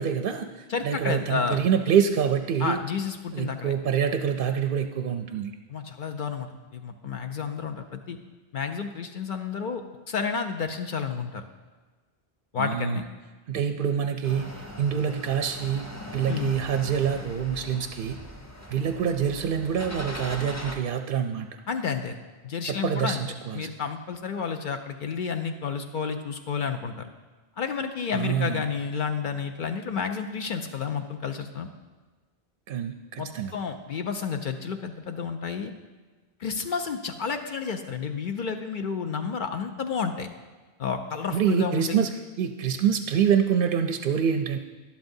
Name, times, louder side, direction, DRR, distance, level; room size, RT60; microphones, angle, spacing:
voice 1, 0.0-2.8 3.3-5.5 12.6-13.0 13.5-15.8 16.1-18.2 18.7-21.5 22.7-23.7 28.1-28.6 32.7-33.5 41.3-44.6, right 8 dB, 60° right, 6 dB, 0.6 m, -26 dB
voice 2, 0.7-1.6 2.6-3.7 5.7-8.2 8.5-9.8 10.1-11.4 12.5-13.1 16.3-16.5 21.7-22.2 22.4-23.2 23.5-27.1 27.6-31.7 33.2-35.7 36.4-40.3 40.8-42.1, left 6 dB, 60° left, 6 dB, 0.6 m, -31 dB
sound 1, 14.2-20.8, equal, 15° left, 0.8 m, -40 dB
11.5 x 11.5 x 2.7 m, 1.3 s
omnidirectional pair, 1.1 m